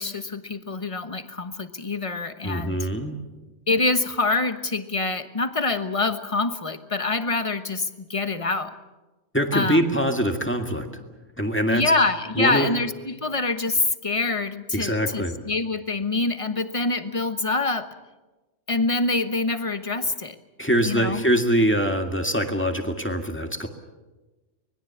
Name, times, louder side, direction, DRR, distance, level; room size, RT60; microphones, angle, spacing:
voice 1, 0.0-2.9 3.7-8.7 9.5-9.8 11.7-17.9 18.7-20.4 20.8-21.2, left 3 dB, 30° left, 10 dB, 1.2 m, -25 dB
voice 2, 2.4-3.2 9.3-11.0 11.4-11.9 12.4-12.7 14.7-15.4 20.6-23.7, equal, 10° left, 5 dB, 2.0 m, -23 dB
24.5 x 21.0 x 7.2 m, 1.1 s
omnidirectional pair, 1.2 m